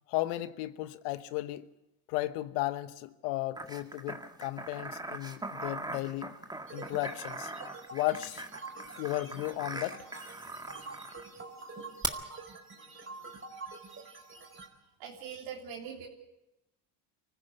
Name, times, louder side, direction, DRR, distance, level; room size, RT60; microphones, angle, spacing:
voice 1, 0.1-1.7 2.1-6.3 6.7-7.5 7.9-8.4 9.0-10.0, left 17 dB, 80° left, 13 dB, 1.2 m, -34 dB
sound 1, 3.6-11.2 12.0-12.1, right 2 dB, 10° right, 2.0 m, -41 dB
sound 2, 6.7-14.7, right 3 dB, 25° right, 4.6 m, -46 dB
voice 2, 15.0-16.1, right 7 dB, 70° right, -2 dB, 3.5 m, -42 dB
24.5 x 15.5 x 8.1 m, 0.94 s
supercardioid pair, 80°, 46 cm